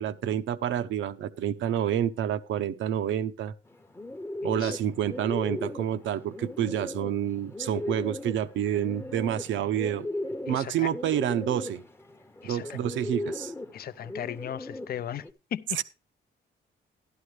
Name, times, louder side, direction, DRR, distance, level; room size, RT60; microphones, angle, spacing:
voice 1, 0.0-3.5 4.4-10.0 10.5-11.8 12.4-13.5 15.8-15.9, right 10 dB, 75° right, 0.7 m, -28 dB
Bird, 3.7-15.3, left 1 dB, 10° left, 0.8 m, -38 dB
voice 2, 4.4-4.8 10.5-10.9 12.4-12.8 13.7-15.3 15.5-15.8, left 10 dB, 50° left, 0.5 m, -37 dB
12.0 x 11.5 x 3.2 m
cardioid pair, 90°, 20 cm